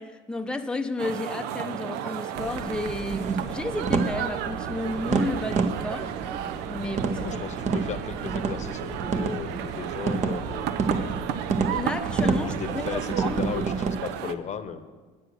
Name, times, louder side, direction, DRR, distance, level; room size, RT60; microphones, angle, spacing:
voice 1, 0.0-6.1 6.7-7.4 11.7-13.6, left 2 dB, 5° left, 0.7 m, -32 dB
sound 1, 1.0-14.3, right 10 dB, 70° right, 0.6 m, -34 dB
sound 2, 2.4-13.9, right 5 dB, 40° right, 1.1 m, -29 dB
voice 2, 7.2-11.4 12.2-14.8, left 7 dB, 40° left, 1.0 m, -36 dB
9.7 x 7.7 x 6.4 m
hypercardioid pair, 80°, 18 cm